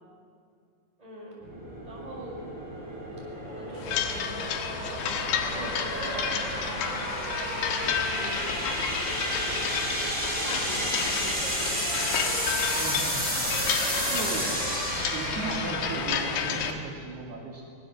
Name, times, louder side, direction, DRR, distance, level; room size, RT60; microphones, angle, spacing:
voice 1, 1.0-1.4 1.8-2.4 3.4-7.3 7.8-9.6 10.4-12.1 13.9-14.3, right 1 dB, 10° right, -3 dB, 6.1 m, -42 dB
sound 1, 1.4-16.8, equal, 5° left, 6.1 m, -32 dB
sound 2, 3.8-16.7, left 7 dB, 85° left, 3.7 m, -31 dB
voice 2, 12.8-13.6 14.1-14.5 15.1-17.6, right 4 dB, 65° right, -2 dB, 4.4 m, -36 dB
24.5 x 20.0 x 7.2 m, 2.3 s
omnidirectional pair, 4.9 m